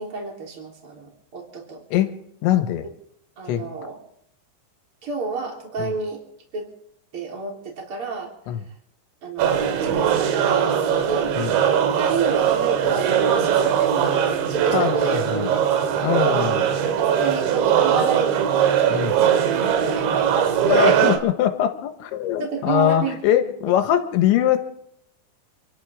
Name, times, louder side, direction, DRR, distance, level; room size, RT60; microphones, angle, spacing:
voice 1, 0.0-1.8 3.4-4.0 5.0-6.2 6.5-6.7 7.1-8.3 9.2-11.4 12.0-15.8 17.0-19.4 19.8-21.2 22.4-23.2, right 4 dB, 30° right, -1 dB, 4.0 m, -31 dB
voice 2, 2.4-2.9 3.4-3.7 5.8-6.0 8.5-8.6 11.4-11.6 14.7-15.5 16.0-16.8 18.9-19.2 20.7-24.6, left 11 dB, 85° left, 7 dB, 3.6 m, -22 dB
sound 1, 9.4-21.2, right 8 dB, 85° right, 3.8 m, -20 dB
28.0 x 12.5 x 3.6 m, 0.72 s
omnidirectional pair, 5.2 m